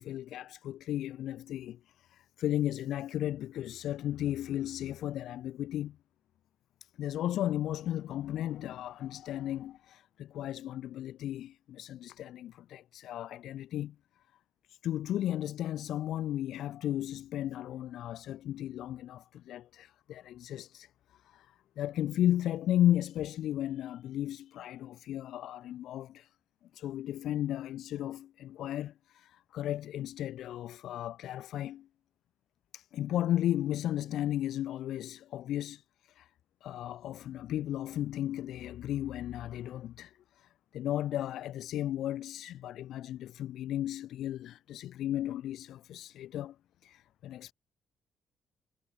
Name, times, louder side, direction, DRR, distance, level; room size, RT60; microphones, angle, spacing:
voice 1, 0.0-6.0 7.0-13.9 14.7-21.5 21.8-26.3 26.7-31.9 32.7-36.3 36.6-46.5 46.8-47.5, left 12 dB, 80° left, 1.3 m, -34 dB
cardioid pair, 135°, 0 cm